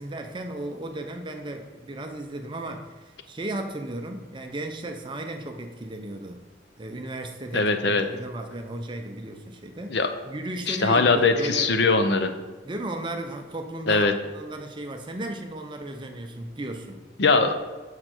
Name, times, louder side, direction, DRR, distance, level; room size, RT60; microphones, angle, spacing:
voice 1, 0.0-6.4 6.8-10.0 10.3-11.8 12.6-17.1, right 1 dB, 25° right, 5 dB, 0.6 m, -35 dB
voice 2, 7.5-8.0 9.9-10.1 10.7-12.3 13.9-14.1 17.2-17.5, left 3 dB, 60° left, 8 dB, 0.6 m, -21 dB
6.5 x 6.5 x 4.4 m, 1.2 s
head